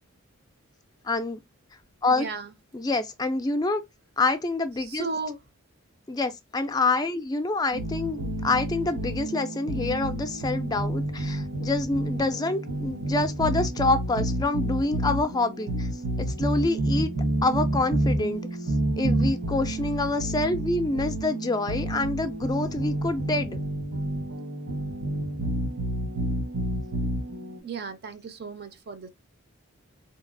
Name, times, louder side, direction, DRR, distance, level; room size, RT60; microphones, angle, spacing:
voice 1, 1.0-1.4 2.0-2.3 2.7-3.8 4.2-5.0 6.1-15.9 16.2-17.1 17.4-18.4 19.0-23.6, left 2 dB, 20° left, 0.4 m, -27 dB
voice 2, 2.1-2.5 4.8-5.4 27.6-29.1, right 4 dB, 45° right, 0.5 m, -35 dB
sound 1, 7.7-27.6, right 1 dB, 80° right, 1.1 m, -29 dB
3.9 x 2.9 x 2.5 m
head